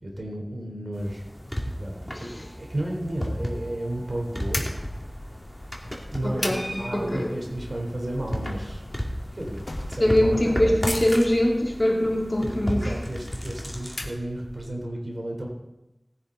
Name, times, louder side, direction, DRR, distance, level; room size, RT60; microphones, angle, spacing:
voice 1, 0.0-1.3 1.6-4.7 5.9-8.8 9.3-10.7 12.4-15.5, right 1 dB, 60° right, -1 dB, 3.7 m, -33 dB
sound 1, 0.9-14.1, equal, 10° left, 2.5 m, -34 dB
sound 2, 4.5-14.8, left 1 dB, 70° left, 1.7 m, -40 dB
voice 2, 6.2-7.3 10.0-12.9, left 1 dB, 35° left, -1 dB, 2.9 m, -23 dB
18.5 x 9.8 x 4.0 m, 0.96 s
wide cardioid pair, 45°, 0 cm